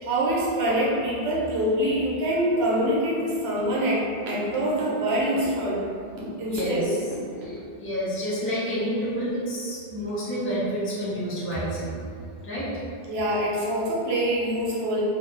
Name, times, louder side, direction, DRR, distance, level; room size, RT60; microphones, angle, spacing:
voice 1, 0.0-5.8 6.2-7.7 13.1-15.0, right 1 dB, 80° right, -5 dB, 0.9 m, -25 dB
voice 2, 6.5-7.0 7.4-12.0 12.4-12.8, equal, 15° left, -9 dB, 0.5 m, -29 dB
2.2 x 2.2 x 3.0 m, 2.3 s
omnidirectional pair, 1.0 m